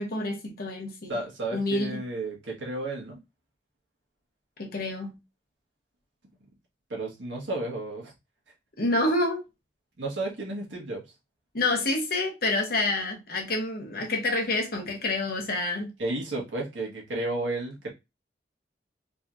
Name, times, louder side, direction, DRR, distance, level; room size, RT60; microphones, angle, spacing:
voice 1, 0.0-1.2 1.5-2.0 4.6-5.1 8.8-9.4 11.5-15.9, left 2 dB, 55° left, 1.1 m, -28 dB
voice 2, 1.1-3.2 6.9-8.1 10.0-11.0 16.0-17.9, right 2 dB, 85° right, 1.5 m, -32 dB
3.9 x 2.9 x 2.5 m
head